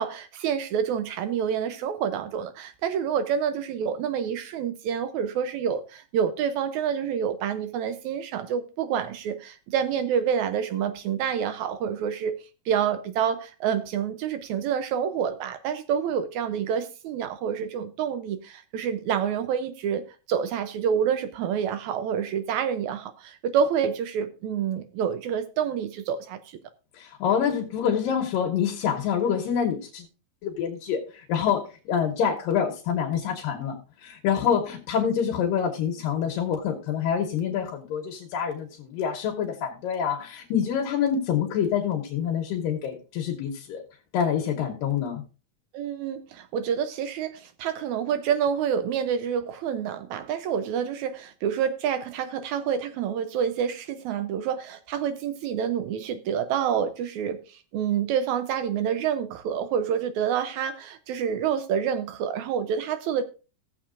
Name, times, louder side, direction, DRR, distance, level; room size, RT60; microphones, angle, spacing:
voice 1, 0.0-12.4 12.7-20.0 20.3-26.6 45.7-63.2, right 8 dB, 80° right, 1.7 m, -28 dB
voice 2, 27.0-30.0 30.4-33.8 34.0-43.8 44.1-45.2, left 8 dB, 85° left, 2.8 m, -26 dB
17.0 x 7.4 x 2.5 m
omnidirectional pair, 3.9 m